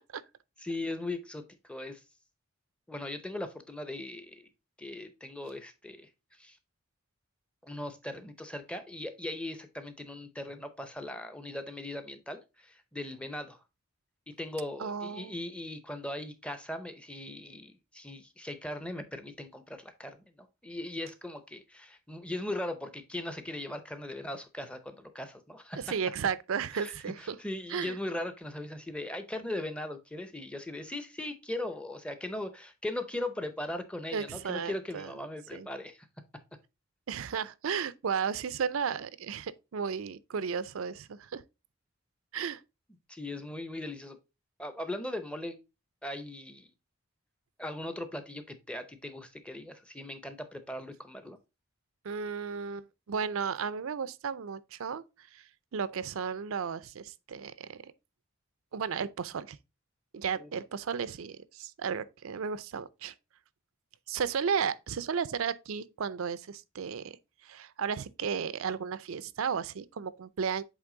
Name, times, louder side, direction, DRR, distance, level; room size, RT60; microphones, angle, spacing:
voice 1, 0.6-2.0 2.9-4.4 4.8-6.6 7.6-13.6 14.4-25.8 26.7-26.9 27.2-36.1 43.1-44.2 44.6-45.6 46.0-46.7 47.6-51.4 60.4-60.5, left 1 dB, 5° left, 0.6 m, -39 dB
voice 2, 14.8-15.4 25.8-27.4 27.7-28.0 34.1-35.1 35.5-35.7 37.1-41.4 42.3-42.6 52.0-57.9 58.7-59.6 60.1-63.1 64.1-67.2 67.4-70.6, right 6 dB, 75° right, 0.4 m, -34 dB
8.0 x 3.4 x 3.7 m
head